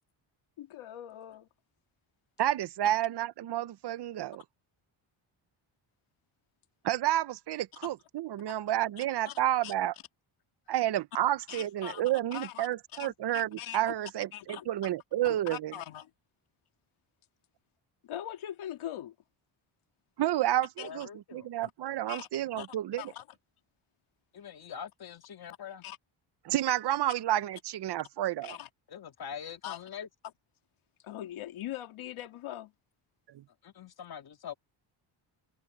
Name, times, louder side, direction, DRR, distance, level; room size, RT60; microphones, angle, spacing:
voice 1, 0.6-1.5 7.8-7.9 8.5-8.6 9.0-9.7 11.5-12.0 12.3-13.9 14.3-14.9 15.2-16.1 18.0-19.1 20.8-20.9 21.6-21.7 22.1-22.3 22.6-23.3 25.8-26.0 28.4-28.7 29.6-29.8 31.0-32.7, left 12 dB, 80° left, 2.5 m, -42 dB
voice 2, 2.4-4.4 6.8-9.9 10.7-15.7 20.2-23.0 26.4-28.6 33.3-33.4, right 13 dB, 55° right, 0.8 m, -30 dB
voice 3, 20.8-21.5 24.3-25.8 28.9-30.1 33.6-34.6, left 8 dB, 50° left, 2.4 m, -43 dB
cardioid pair, 135°, 48 cm